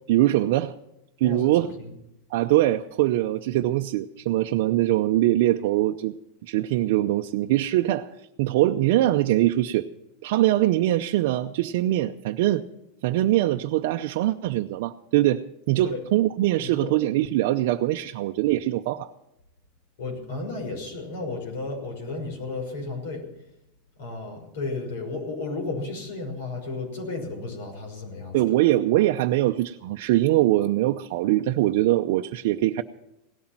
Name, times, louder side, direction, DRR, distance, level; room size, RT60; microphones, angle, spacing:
voice 1, 0.1-0.7 1.2-1.7 2.3-6.1 6.4-8.1 8.4-9.9 10.2-12.6 13.0-19.1 28.3-32.8, right 15 dB, 55° right, 3 dB, 0.6 m, -22 dB
voice 2, 1.2-1.9 15.8-16.0 16.6-16.9 20.0-23.3 24.0-28.4, left 3 dB, 70° left, 3 dB, 5.9 m, -33 dB
17.5 x 13.0 x 6.0 m, 0.84 s
supercardioid pair, 175°, 0 cm